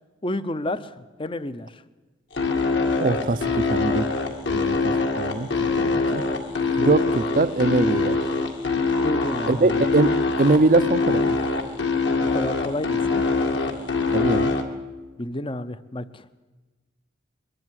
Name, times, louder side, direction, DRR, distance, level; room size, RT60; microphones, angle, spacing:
voice 1, 0.2-1.8 6.7-7.0 9.0-9.9 12.3-13.2 15.2-16.4, left 1 dB, 25° left, 14 dB, 0.7 m, -30 dB
sound 1, 2.3-14.6, left 4 dB, 60° left, 2.0 m, -23 dB
voice 2, 3.0-4.1 4.5-5.5 5.7-6.2 6.8-8.2 9.5-11.4 14.1-14.5, right 3 dB, 40° right, 15 dB, 0.5 m, -22 dB
22.5 x 12.0 x 9.9 m, 1.2 s
head